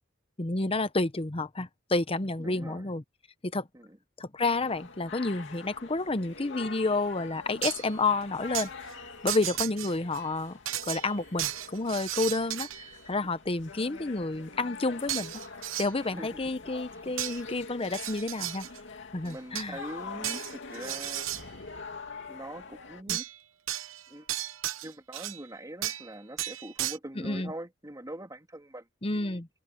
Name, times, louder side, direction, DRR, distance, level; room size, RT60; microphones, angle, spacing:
voice 1, 0.4-3.0 3.4-3.7 4.2-8.7 9.2-10.6 10.9-15.4 15.8-18.7 19.1-19.8 23.1-23.2 27.2-27.5 29.0-29.5, left 3 dB, 30° left, 0.9 m, -30 dB
voice 2, 2.4-2.9 3.7-4.0 16.0-16.4 16.9-17.1 18.6-18.7 19.2-21.3 22.3-23.2 24.1-24.3 24.8-28.9 29.1-29.4, right 1 dB, 20° right, 2.8 m, -43 dB
sound 1, 4.4-23.0, left 4 dB, 65° left, 2.7 m, -45 dB
sound 2, 7.6-8.0 8.5-8.7 9.3-10.2 10.7-12.9 15.1-15.9 17.2-17.4 17.8-18.8 19.3-19.8 20.2-21.5 23.1-23.4 23.7-25.4 25.8-26.1 26.4-27.0, right 13 dB, 85° right, 1.0 m, -34 dB
head